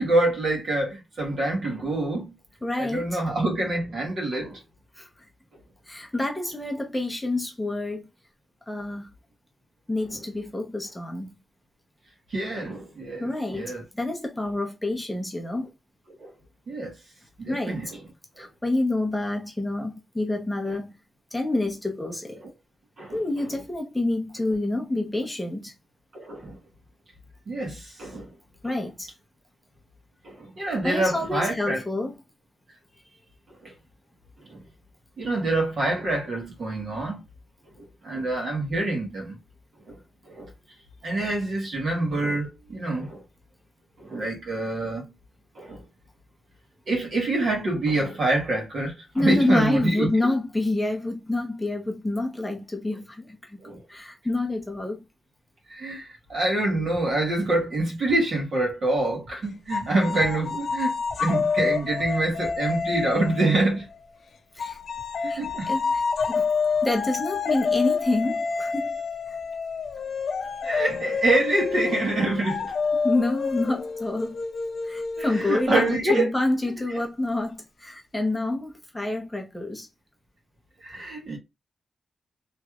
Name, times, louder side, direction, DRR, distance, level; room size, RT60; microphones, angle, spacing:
voice 1, 0.0-2.4 2.8-4.6 12.3-13.8 16.2-16.3 16.7-17.0 17.4-18.0 18.4-18.5 20.7-20.8 22.3-22.5 23.0-23.5 26.1-26.6 27.5-28.3 28.6-28.7 30.2-31.8 33.6-33.7 34.5-34.6 35.2-37.2 37.8-39.4 39.9-40.0 40.2-40.5 41.0-43.2 44.0-45.1 45.5-45.8 46.9-50.1 53.6-53.8 55.7-63.9 65.2-65.7 70.6-72.7 75.2-76.3 76.9-77.0 80.8-81.4, right 2 dB, 60° right, 1.4 m, -26 dB
voice 2, 2.6-3.2 5.0-5.3 5.9-8.1 8.7-9.1 9.9-11.3 13.2-15.7 17.5-17.8 18.4-21.0 21.3-22.4 23.1-25.7 28.6-29.1 30.8-32.1 49.1-53.6 53.9-55.0 64.6-64.8 65.3-65.4 65.7-66.0 66.3-66.5 66.8-68.9 69.3-69.4 73.0-74.4 74.8-79.9, left 2 dB, 10° left, 0.7 m, -27 dB
sound 1, 59.7-64.1 64.6-75.9, left 5 dB, 65° left, 0.5 m, -28 dB
3.1 x 3.0 x 2.4 m
wide cardioid pair, 130°, 0 cm